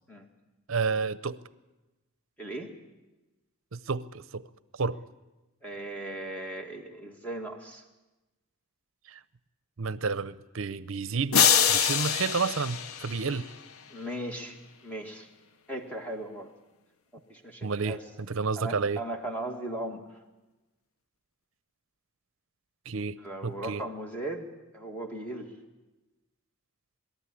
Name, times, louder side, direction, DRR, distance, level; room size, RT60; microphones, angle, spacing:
voice 1, 0.7-1.4 3.7-4.4 4.8-5.0 9.1-9.2 9.8-13.5 17.6-19.0 22.9-23.2 23.4-23.8, right 4 dB, 65° right, 16 dB, 0.7 m, -31 dB
voice 2, 2.4-2.7 5.6-7.8 13.9-15.3 15.7-16.5 17.3-18.0 18.6-20.0 23.2-24.5 24.7-25.5, right 1 dB, 5° left, 2 dB, 2.1 m, -37 dB
sound 1, 11.3-13.7, left 8 dB, 80° left, 0.7 m, -25 dB
22.0 x 13.5 x 9.8 m, 1.1 s
head